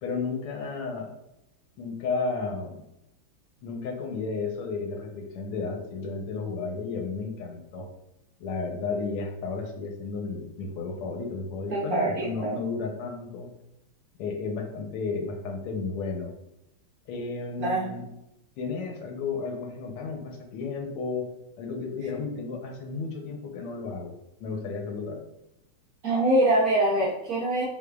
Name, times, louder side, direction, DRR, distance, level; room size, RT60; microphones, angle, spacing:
voice 1, 0.0-1.1 1.8-2.8 3.6-7.9 8.4-13.5 14.2-16.3 17.1-18.1 18.6-21.3 21.6-24.1 24.4-25.2, left 4 dB, 85° left, 3 dB, 1.7 m, -33 dB
voice 2, 11.7-12.5 17.6-17.8 26.0-27.6, right 1 dB, 60° right, -5 dB, 1.0 m, -24 dB
5.8 x 3.2 x 2.3 m, 0.85 s
omnidirectional pair, 2.3 m